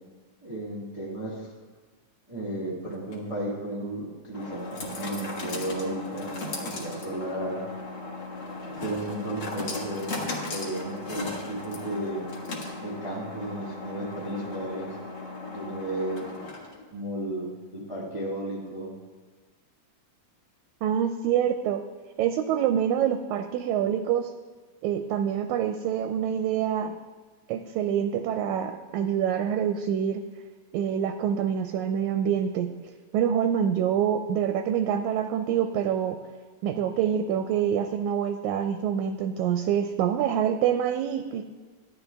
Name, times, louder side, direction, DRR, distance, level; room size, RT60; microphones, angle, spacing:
voice 1, 0.4-1.5 2.3-7.6 8.8-10.2 10.5-12.2 12.8-15.0 15.5-16.2 16.9-18.9, right 1 dB, 20° right, -5 dB, 1.0 m, -34 dB
sound 1, 2.9-16.9, left 2 dB, 45° left, 1.5 m, -37 dB
voice 2, 20.8-21.8 22.2-24.3 24.8-26.9 27.5-30.2 30.7-32.7 33.1-36.2 36.6-41.4, right 9 dB, 80° right, 7 dB, 1.8 m, -26 dB
12.0 x 10.5 x 3.4 m, 1.3 s
omnidirectional pair, 3.6 m